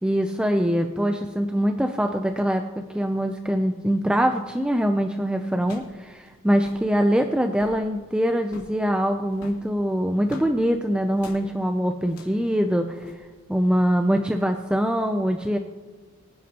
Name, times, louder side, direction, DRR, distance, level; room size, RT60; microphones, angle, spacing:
voice 1, 0.0-13.0 13.5-15.6, equal, 5° right, 5 dB, 0.4 m, -23 dB
sound 1, 4.7-4.9 5.6-6.0 6.3-6.4 6.5-6.9 7.4-7.8 8.4-8.8 9.3-10.5 11.1-11.4 12.0-12.4 13.0-13.1, left 1 dB, 85° left, 2.9 m, -44 dB
24.0 x 10.5 x 2.9 m, 1.3 s
head